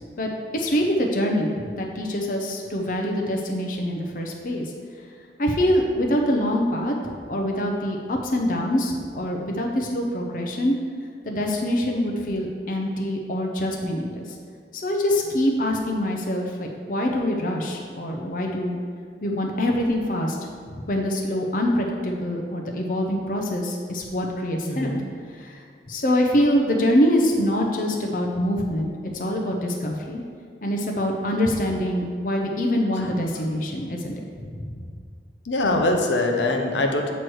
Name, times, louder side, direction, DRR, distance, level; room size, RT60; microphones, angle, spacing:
voice 1, 0.2-4.7 5.4-7.0 7.3-10.7 11.2-14.2 14.8-18.8 19.2-20.4 20.7-24.9 25.3-25.6 25.9-30.2 30.6-34.6, equal, 50° left, 0 dB, 0.6 m, -24 dB
voice 2, 24.7-25.0 35.5-37.1, left 2 dB, 85° left, 2 dB, 0.8 m, -23 dB
7.9 x 3.1 x 6.1 m, 2.2 s
head